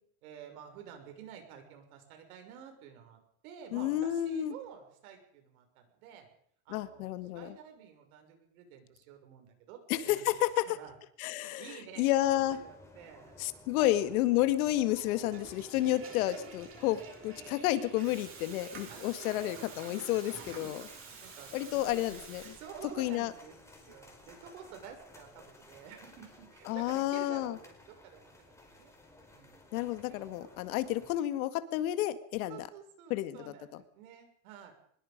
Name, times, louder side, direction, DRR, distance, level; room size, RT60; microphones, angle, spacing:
voice 1, 0.2-6.3 6.6-10.4 10.7-10.9 11.6-13.4 13.8-14.1 15.3-15.8 16.2-16.8 18.9-19.6 20.5-22.2 22.6-28.9 29.3-29.6 30.1-30.7 32.5-34.7, right 8 dB, 85° right, 5 dB, 6.6 m, -51 dB
voice 2, 3.7-4.5 6.7-7.6 9.9-10.8 11.2-11.6 12.0-12.6 13.4-20.9 21.5-22.5 23.0-23.3 26.7-27.6 29.7-32.7 33.1-33.4 33.7-33.8, left 14 dB, 85° left, 11 dB, 2.1 m, -31 dB
sound 1, 12.1-31.2, left 1 dB, 5° left, 4.9 m, -56 dB
Water tap faucet / Toilet flush, 15.0-23.1, right 5 dB, 30° right, 6.6 m, -49 dB
23.5 x 21.0 x 5.3 m, 0.67 s
supercardioid pair, 150°, 42 cm